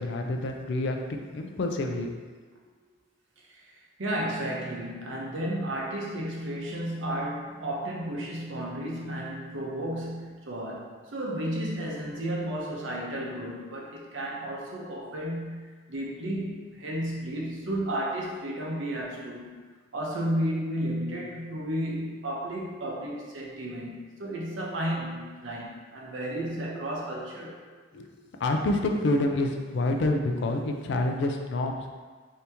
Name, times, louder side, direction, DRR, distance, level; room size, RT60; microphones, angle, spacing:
voice 1, 0.0-2.1 27.9-31.9, left 2 dB, 65° left, 3 dB, 0.4 m, -28 dB
voice 2, 4.0-19.5 19.9-27.6, right 1 dB, 85° right, -3 dB, 0.7 m, -33 dB
2.8 x 2.8 x 3.4 m, 1.4 s
head